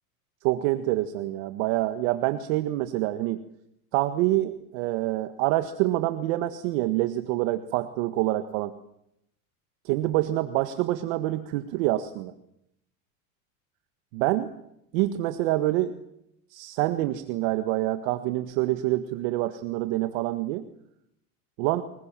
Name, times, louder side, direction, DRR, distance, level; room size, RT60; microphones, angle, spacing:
voice 1, 0.4-3.4 3.9-8.7 9.8-12.3 14.1-14.5 14.9-15.9 16.5-20.6 21.6-21.8, right 16 dB, 65° right, 9 dB, 1.6 m, -26 dB
29.5 x 21.0 x 7.6 m, 0.80 s
supercardioid pair, 125°, 43 cm